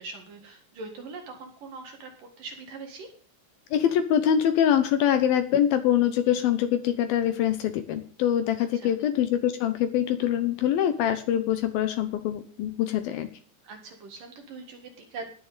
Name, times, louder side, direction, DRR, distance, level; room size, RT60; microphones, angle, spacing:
voice 1, 0.0-3.1 8.6-8.9 13.6-15.3, right 3 dB, 60° right, 4 dB, 3.3 m, -42 dB
voice 2, 3.7-13.3, left 10 dB, 70° left, 10 dB, 2.6 m, -24 dB
19.5 x 7.1 x 5.1 m, 0.43 s
omnidirectional pair, 4.7 m